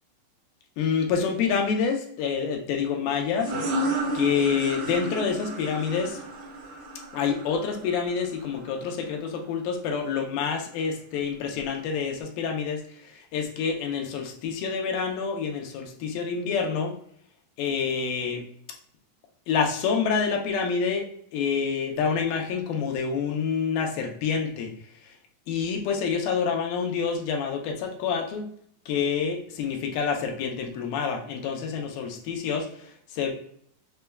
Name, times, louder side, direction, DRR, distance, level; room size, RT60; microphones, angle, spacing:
voice 1, 0.8-3.9 4.1-6.2 7.1-16.9 17.6-18.4 19.5-21.1 21.3-24.7 25.0-25.1 25.5-28.5 28.9-33.3, left 6 dB, 90° left, 2 dB, 2.6 m, -27 dB
sound 1, 3.4-8.8, right 1 dB, 75° right, 3.0 m, -32 dB
6.5 x 3.3 x 2.3 m, 0.65 s
omnidirectional pair, 4.0 m